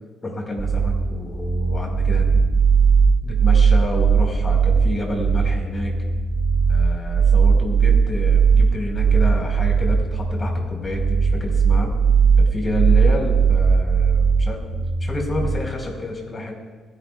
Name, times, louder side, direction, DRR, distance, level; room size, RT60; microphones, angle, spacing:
voice 1, 0.2-2.5 3.2-5.9 6.7-11.9 12.4-14.6 15.0-16.5, left 1 dB, 30° left, 1 dB, 4.6 m, -29 dB
sound 1, 0.6-15.6, right 6 dB, 25° right, 1.8 m, -18 dB
29.5 x 11.5 x 2.4 m, 1.5 s
cardioid pair, 90°, 0 cm